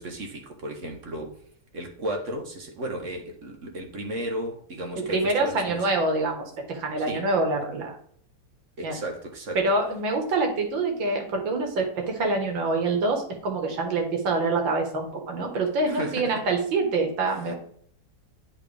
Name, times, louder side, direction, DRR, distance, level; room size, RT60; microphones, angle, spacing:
voice 1, 0.0-1.3 1.7-5.9 7.0-7.2 8.8-9.6 15.8-16.4 17.5-17.6, right 1 dB, 50° right, 3 dB, 1.2 m, -34 dB
voice 2, 4.9-8.0 8.8-9.0 9.6-17.5, right 3 dB, 85° right, 3 dB, 2.1 m, -26 dB
10.5 x 4.0 x 3.4 m, 0.63 s
omnidirectional pair, 2.0 m